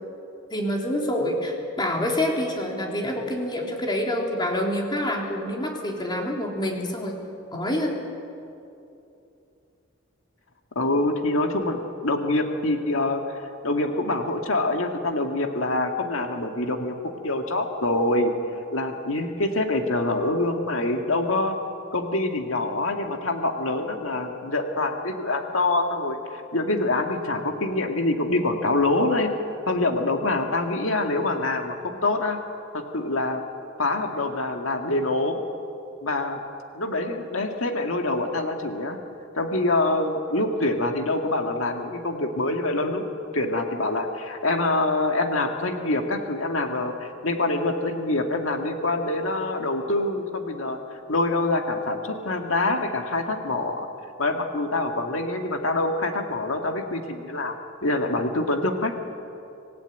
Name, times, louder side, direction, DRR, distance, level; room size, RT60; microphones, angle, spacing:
voice 1, 0.5-7.2 7.5-8.0, left 1 dB, 20° left, 0 dB, 3.5 m, -27 dB
voice 2, 10.8-17.0 17.2-18.3 18.7-21.6 21.9-29.3 29.7-32.4 32.7-33.4 33.8-35.4 36.0-36.4 36.7-39.0 39.4-43.0 43.3-53.9 54.2-57.6 57.8-58.9, left 2 dB, 75° left, 4 dB, 1.9 m, -25 dB
26.5 x 16.5 x 9.1 m, 2.7 s
head